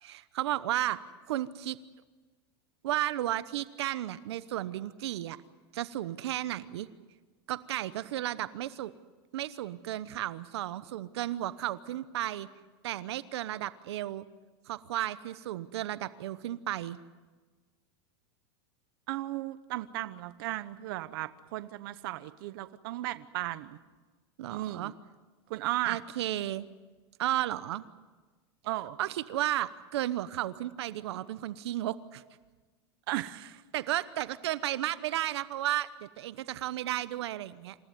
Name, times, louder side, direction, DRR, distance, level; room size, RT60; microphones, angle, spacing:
voice 1, 0.0-1.0 1.3-1.8 2.8-5.4 5.7-6.9 7.5-8.9 9.3-12.5 12.8-14.3 14.7-17.0 24.4-24.9 25.8-26.7 27.2-27.8 29.0-32.2 33.7-37.7, right 13 dB, 80° right, 15 dB, 1.0 m, -33 dB
voice 2, 19.1-23.8 24.5-24.9 25.5-26.0 28.6-29.0 33.1-33.5, right 16 dB, 60° right, 13 dB, 1.0 m, -35 dB
27.5 x 15.0 x 9.4 m, 1.3 s
supercardioid pair, 165°, 14 cm